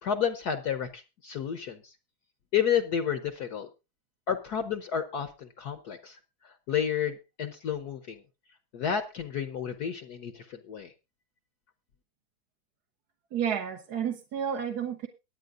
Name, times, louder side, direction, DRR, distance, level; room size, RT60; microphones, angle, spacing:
voice 1, 0.0-1.8 2.5-3.7 4.3-6.2 6.7-8.2 8.7-10.9, left 8 dB, 60° left, 8 dB, 1.2 m, -31 dB
voice 2, 13.3-15.1, right 8 dB, 55° right, 3 dB, 1.4 m, -31 dB
23.5 x 8.8 x 2.5 m, 0.27 s
omnidirectional pair, 2.2 m